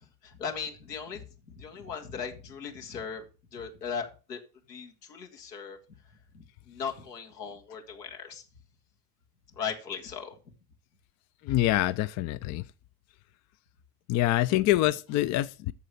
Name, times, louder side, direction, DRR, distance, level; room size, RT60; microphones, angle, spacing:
voice 1, 0.2-1.2 1.6-3.2 3.5-4.4 4.7-5.8 6.3-8.4 9.6-10.4, left 6 dB, 80° left, 1.8 m, -38 dB
voice 2, 11.4-12.6 14.1-15.7, left 15 dB, 35° left, 0.5 m, -25 dB
8.4 x 7.0 x 6.6 m
figure-of-eight pair, 60°, 48 cm